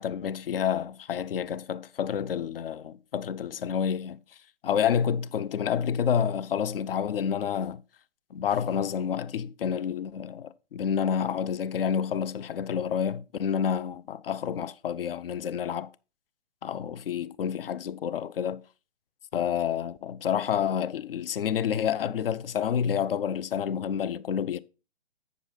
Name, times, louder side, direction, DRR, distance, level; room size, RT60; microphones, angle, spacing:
voice 1, 0.0-4.2 4.6-7.8 8.3-15.9 16.6-18.6 19.3-24.6, left 8 dB, 60° left, 0.5 m, -29 dB
8.1 x 6.9 x 4.0 m
figure-of-eight pair, 135°, 32 cm